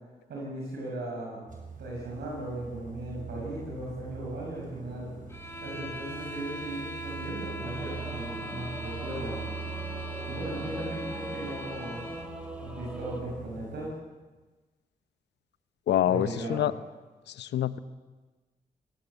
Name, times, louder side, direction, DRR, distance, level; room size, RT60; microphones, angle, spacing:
voice 1, 0.3-1.5 1.8-5.1 5.6-9.4 10.3-12.0 12.6-13.9 16.1-16.7, right 1 dB, 75° right, -2 dB, 6.2 m, -37 dB
sound 1, 1.5-13.9, right 5 dB, 50° right, 6.1 m, -43 dB
sound 2, 5.3-12.4, equal, 15° left, 4.3 m, -41 dB
Singing / Musical instrument, 7.6-13.2, equal, 5° right, 4.8 m, -42 dB
voice 2, 15.9-16.7 17.4-17.8, left 11 dB, 85° left, 15 dB, 0.8 m, -26 dB
20.0 x 18.0 x 8.1 m, 1.3 s
supercardioid pair, 45°, 17 cm